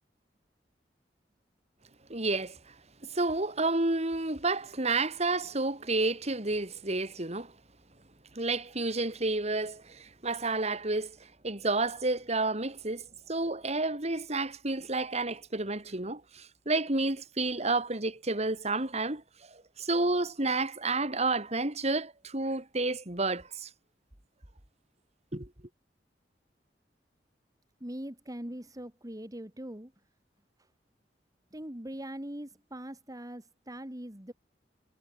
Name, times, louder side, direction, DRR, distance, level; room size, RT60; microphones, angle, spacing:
voice 1, 2.1-2.7 3.0-7.5 8.3-11.2 11.4-19.2 19.5-23.7 25.3-25.5, right 2 dB, 40° right, 3.2 m, -30 dB
voice 2, 27.8-29.9 31.5-34.3, right 1 dB, 20° right, 2.4 m, -41 dB
head